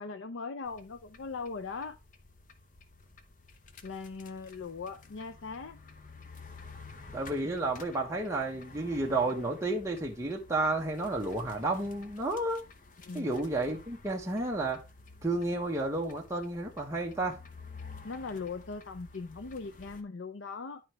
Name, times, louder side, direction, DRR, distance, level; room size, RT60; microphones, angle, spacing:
voice 1, 0.0-2.0 3.8-5.8 13.1-13.4 18.0-20.8, left 4 dB, 75° left, 0.6 m, -40 dB
sound 1, 0.7-20.0, left 3 dB, 40° left, 0.8 m, -52 dB
voice 2, 7.1-12.7 13.1-14.8 15.2-17.4, right 2 dB, 15° right, 1.0 m, -31 dB
11.0 x 4.5 x 3.1 m
head